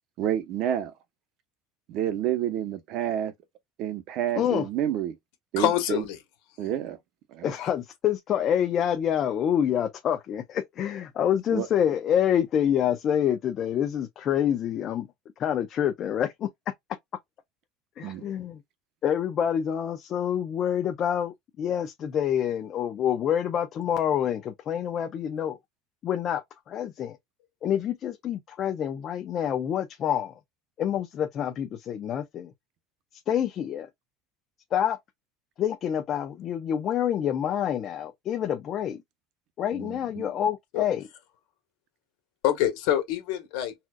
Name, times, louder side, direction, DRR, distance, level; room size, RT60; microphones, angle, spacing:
voice 1, 0.2-0.9 1.9-3.3 3.8-5.2 5.5-6.0 6.6-7.0 7.3-7.5 11.5-11.7 18.0-18.2 39.7-40.3, right 10 dB, 55° right, 0.8 m, -29 dB
voice 2, 4.3-4.7 7.4-15.1 15.4-16.5 18.0-18.6 19.0-25.6 26.0-27.2 27.6-30.4 30.8-32.5 33.1-33.9 34.7-35.0 35.6-39.0 39.6-41.0, left 9 dB, 35° left, 0.5 m, -27 dB
voice 3, 5.6-6.2 7.5-7.7 40.7-40.8 42.4-43.7, left 12 dB, 70° left, 1.5 m, -26 dB
4.2 x 2.4 x 2.3 m
cardioid pair, 145°, 0 cm